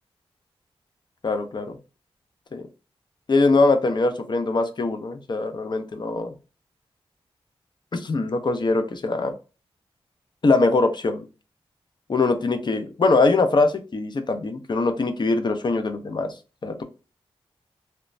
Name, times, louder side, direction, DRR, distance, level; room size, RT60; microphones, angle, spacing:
voice 1, 1.2-1.8 2.5-2.7 3.3-6.3 7.9-9.3 10.4-11.2 12.1-16.3 16.6-16.8, left 3 dB, 45° left, 7 dB, 0.5 m, -22 dB
3.1 x 2.0 x 2.4 m, 0.33 s
cardioid pair, 65°, 10 cm